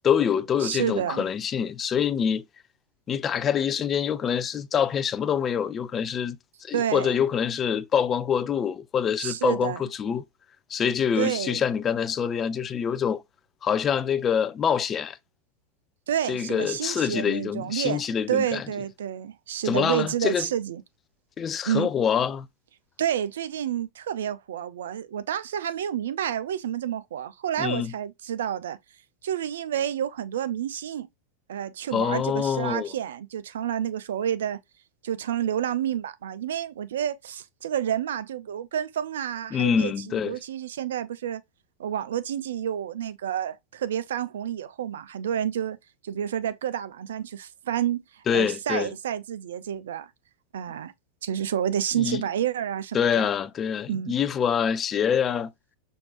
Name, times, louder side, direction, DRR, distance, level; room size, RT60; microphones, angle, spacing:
voice 1, 0.0-2.4 3.1-10.2 10.7-13.2 13.6-15.2 16.3-18.6 19.6-20.5 21.4-22.5 27.6-27.9 31.9-32.9 39.5-40.4 48.3-48.9 52.0-52.2 52.9-55.5, left 8 dB, 25° left, 0.4 m, -25 dB
voice 2, 0.6-1.2 6.7-7.2 9.2-9.8 11.2-11.6 16.1-18.0 18.3-20.8 21.7-21.9 23.0-28.8 29.2-31.1 31.5-34.6 35.0-41.4 41.8-45.8 46.0-50.1 50.5-50.9 51.2-53.3 53.9-54.2, right 10 dB, 60° right, 0.4 m, -29 dB
5.9 x 2.6 x 2.3 m
figure-of-eight pair, 90°, 0 cm